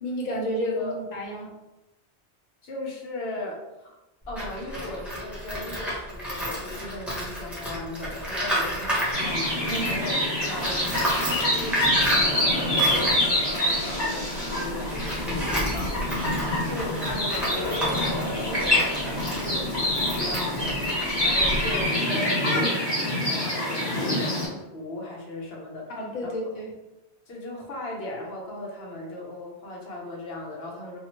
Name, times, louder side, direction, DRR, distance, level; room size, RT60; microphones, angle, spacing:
voice 1, 0.0-1.5 26.0-26.7, left 1 dB, 45° left, -2 dB, 0.7 m, -30 dB
voice 2, 2.6-3.9 4.3-16.3 16.6-22.8 23.3-26.3 27.3-31.0, left 1 dB, 65° left, -2 dB, 1.0 m, -37 dB
Tools, 4.3-10.1 10.4-21.8, equal, ahead, 0.8 m, -32 dB
sound 1, 9.1-24.5, left 1 dB, 25° left, 1.3 m, -26 dB
sound 2, 11.9-14.6 17.2-19.9, right 2 dB, 30° right, 0.8 m, -38 dB
2.7 x 2.4 x 2.9 m, 0.98 s
omnidirectional pair, 1.1 m